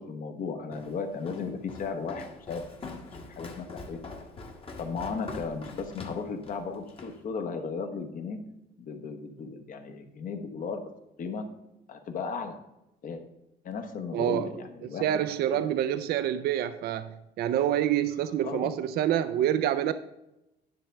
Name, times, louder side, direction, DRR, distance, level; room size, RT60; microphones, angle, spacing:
voice 1, 0.0-3.0 3.2-4.0 4.8-8.4 8.8-10.8 11.2-11.5 11.9-12.5 13.0-13.2 13.6-15.1 15.5-15.6 18.4-18.7, left 5 dB, 55° left, 1.2 m, -35 dB
Walk footsteps, 0.7-7.2, left 3 dB, 35° left, 1.3 m, -43 dB
voice 2, 14.1-14.5 15.0-19.9, right 11 dB, 65° right, 0.5 m, -27 dB
10.0 x 3.4 x 6.6 m
cardioid pair, 110°, 17 cm